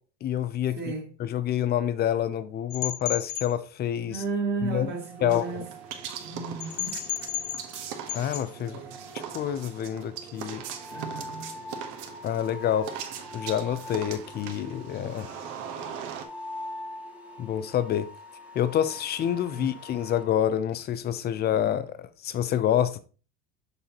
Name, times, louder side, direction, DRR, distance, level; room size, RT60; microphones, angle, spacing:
voice 1, 0.2-0.8 1.2-4.2 4.6-4.9 5.2-5.5 8.1-8.8 9.3-10.6 12.2-12.9 13.3-15.3 17.4-18.1 18.5-23.0, left 10 dB, 30° left, 0.5 m, -27 dB
voice 2, 0.8-1.1 4.1-5.7 6.2-7.1 8.6-9.0 10.9-11.5 19.6-19.7, right 4 dB, 25° right, 1.9 m, -33 dB
sound 1, 2.7-3.5 6.6-7.8 8.1-8.4, left 14 dB, 85° left, 1.5 m, -33 dB
sound 2, 4.7-20.3, left 1 dB, 5° right, 1.2 m, -44 dB
sound 3, 5.3-16.2, right 8 dB, 60° right, 1.2 m, -40 dB
6.6 x 5.5 x 2.9 m
cardioid pair, 145°, 36 cm